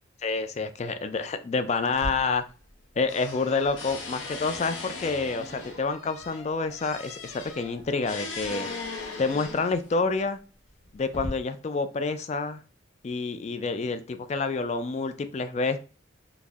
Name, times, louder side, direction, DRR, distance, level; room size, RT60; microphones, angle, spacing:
voice 1, 0.2-2.4 3.0-8.7 9.2-10.4 10.9-12.6 13.0-15.8, left 4 dB, 35° left, 9 dB, 0.3 m, -28 dB
sound 1, 1.9-2.8 3.1-9.9 10.7-11.3, left 3 dB, 85° left, 0.8 m, -38 dB
3.8 x 2.6 x 2.3 m, 0.35 s
head